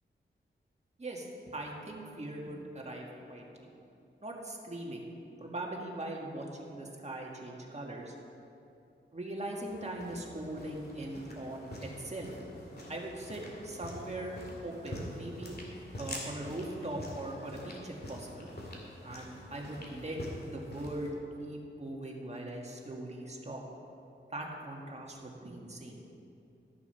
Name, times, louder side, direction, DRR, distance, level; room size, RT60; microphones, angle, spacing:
voice 1, 1.0-3.7 4.2-5.1 5.4-8.1 9.1-12.3 12.9-14.3 14.6-15.6 16.0-18.5 19.0-20.2 20.4-23.6 24.3-26.0, right 1 dB, 35° right, -1 dB, 1.8 m, -40 dB
sound 1, 9.6-21.1, left 1 dB, 50° left, 2.2 m, -45 dB
12.5 x 7.0 x 5.6 m, 2.7 s
wide cardioid pair, 80°, 20 cm